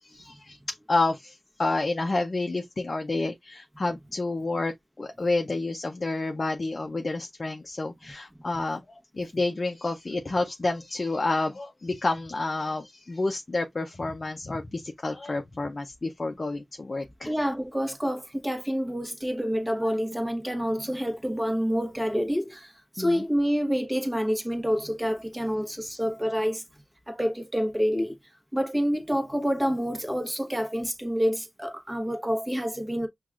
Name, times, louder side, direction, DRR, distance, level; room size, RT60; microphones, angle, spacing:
voice 1, 0.0-17.3 23.0-23.2, left 2 dB, 40° left, 0.5 m, -29 dB
voice 2, 17.2-26.6 27.1-28.2 28.5-33.1, equal, 10° right, 1.0 m, -28 dB
5.8 x 2.3 x 2.4 m
wide cardioid pair, 80°, 0 cm